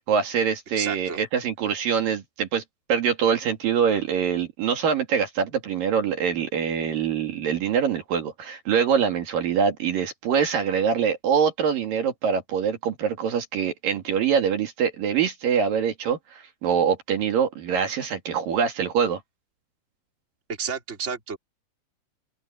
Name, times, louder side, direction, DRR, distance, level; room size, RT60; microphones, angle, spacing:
voice 1, 0.1-2.6 2.9-19.2, right 7 dB, 65° right, 3.7 m, -24 dB
voice 2, 0.8-1.2 20.6-21.4, right 6 dB, 20° right, 3.2 m, -31 dB
open air
omnidirectional pair, 4.5 m